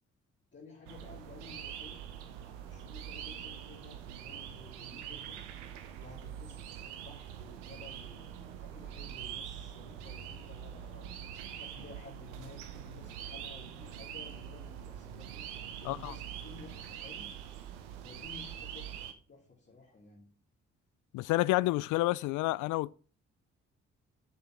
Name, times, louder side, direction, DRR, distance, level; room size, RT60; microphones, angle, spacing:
voice 1, 0.5-2.0 2.3-5.4 6.0-17.3 17.9-20.3, left 4 dB, 35° left, 2.8 m, -54 dB
sound 1, 0.9-19.1, right 9 dB, 80° right, 1.0 m, -44 dB
voice 2, 21.1-22.9, left 18 dB, 65° left, 0.5 m, -29 dB
6.9 x 6.8 x 6.0 m
hypercardioid pair, 40°, 33 cm